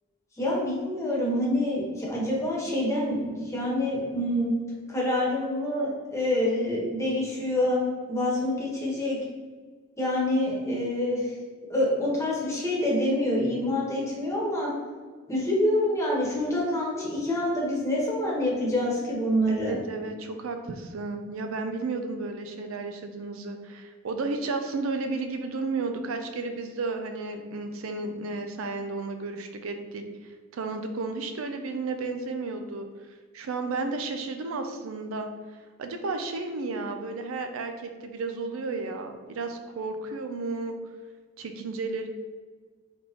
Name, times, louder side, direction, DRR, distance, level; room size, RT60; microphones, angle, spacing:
voice 1, 0.4-4.5 4.9-7.8 8.1-9.2 10.0-11.3 11.7-14.7 15.3-19.8, left 1 dB, 15° left, -4 dB, 1.1 m, -26 dB
voice 2, 19.5-30.0 30.5-32.9 33.3-35.3 35.8-40.7 41.4-42.1, right 3 dB, 80° right, 6 dB, 0.4 m, -33 dB
4.1 x 3.5 x 2.9 m, 1.5 s
head